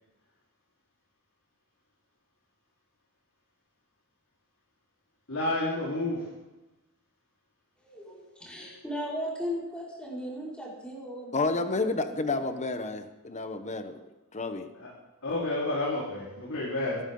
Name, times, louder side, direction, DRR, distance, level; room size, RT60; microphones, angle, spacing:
voice 1, 5.3-6.2 14.8-14.9 15.2-17.0, left 2 dB, 65° left, -6 dB, 4.3 m, -30 dB
voice 2, 7.8-11.9 12.2-12.4, equal, 5° left, -6 dB, 5.5 m, -37 dB
voice 3, 11.3-14.0 14.3-14.7, left 3 dB, 30° left, 8 dB, 1.1 m, -30 dB
22.5 x 13.0 x 3.9 m, 1.0 s
head